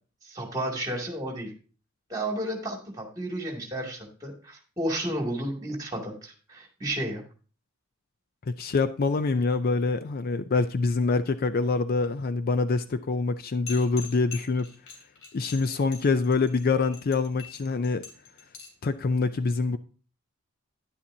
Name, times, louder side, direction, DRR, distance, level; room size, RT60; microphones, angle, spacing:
voice 1, 0.2-1.5 2.1-7.2, right 1 dB, 15° right, 2.4 m, -32 dB
voice 2, 8.5-14.7 15.3-18.1 18.8-19.8, left 4 dB, 45° left, 0.4 m, -25 dB
sound 1, 13.7-18.9, left 7 dB, 60° left, 3.1 m, -43 dB
10.5 x 10.0 x 2.7 m
head